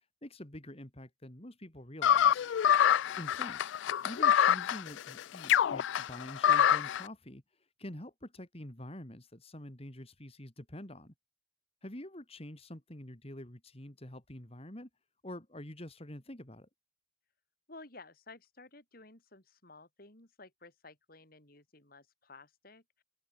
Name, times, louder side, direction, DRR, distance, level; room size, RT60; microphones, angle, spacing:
voice 1, 0.0-2.4 3.2-3.6 4.0-7.4 7.8-11.1 11.8-14.9 15.2-16.7, left 1 dB, 30° left, 3.1 m, -46 dB
sound 1, 2.0-7.0, left 9 dB, 70° left, 0.3 m, -26 dB
voice 2, 17.7-23.0, left 3 dB, 50° left, 4.4 m, -54 dB
open air
head